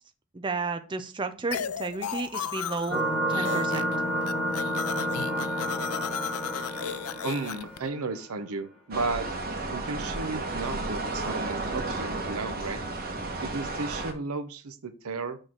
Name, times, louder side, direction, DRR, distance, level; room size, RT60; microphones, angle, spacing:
voice 1, 0.3-3.0 3.3-3.8, right 3 dB, 20° right, 8 dB, 0.5 m, -32 dB
sound 1, 1.5-3.0 3.3-4.0 4.2-7.8, left 9 dB, 85° left, 0.4 m, -35 dB
sound 2, 2.9-8.2, equal, 5° left, 2.2 m, -30 dB
voice 2, 6.7-9.3 9.7-12.8 13.4-15.4, right 3 dB, 90° right, 11 dB, 0.8 m, -34 dB
sound 3, 8.9-14.1, right 2 dB, 45° right, 1.2 m, -33 dB
6.4 x 3.2 x 5.8 m, 0.36 s
head